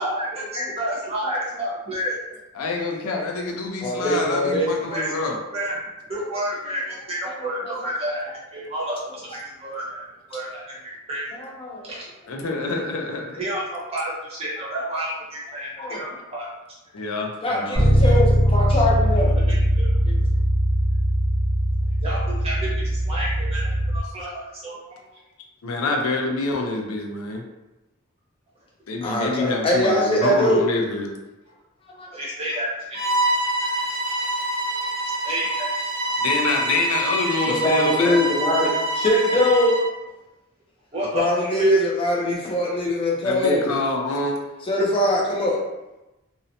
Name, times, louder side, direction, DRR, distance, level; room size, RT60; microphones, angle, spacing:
voice 1, 0.0-2.2 4.9-5.8 6.1-11.4 11.8-12.1 13.3-16.5 18.6-18.8 19.5-20.0 22.0-25.1 32.1-33.2 33.6-33.9 35.2-35.9 40.9-41.7, right 1 dB, 30° right, -6 dB, 0.7 m, -30 dB
voice 2, 2.5-5.4 12.3-13.4 16.9-17.8 25.6-27.4 28.9-31.2 36.2-38.2 43.2-44.7, left 3 dB, 90° left, 1 dB, 0.5 m, -26 dB
voice 3, 3.8-4.7 7.6-7.8 11.4-11.8 15.8-16.0 17.4-19.3 20.1-20.2 29.0-30.6 31.9-32.1 37.5-39.8 41.1-43.7 44.6-45.6, left 1 dB, 25° left, -2 dB, 0.4 m, -22 dB
Bass guitar, 17.7-24.0, equal, 50° left, 1.0 m, -20 dB
Bowed string instrument, 32.9-39.9, right 1 dB, 75° right, 1.0 m, -26 dB
2.7 x 2.0 x 2.6 m, 1.0 s
head